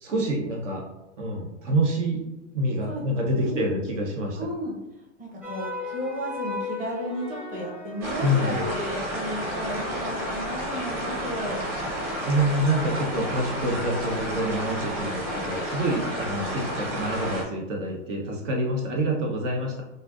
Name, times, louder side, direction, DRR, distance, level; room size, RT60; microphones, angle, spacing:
voice 1, 0.0-0.9 1.2-2.2 2.5-4.4 8.2-8.6 12.3-19.8, right 1 dB, 70° right, 0 dB, 1.1 m, -27 dB
voice 2, 3.3-3.7 4.4-4.8 5.2-11.6, equal, 20° right, -1 dB, 0.8 m, -33 dB
sound 1, 5.4-15.8, left 3 dB, 5° right, 0.3 m, -40 dB
sound 2, 8.0-17.4, equal, 40° right, 1.5 m, -31 dB
4.2 x 2.6 x 2.5 m, 0.92 s
hypercardioid pair, 115°, 38 cm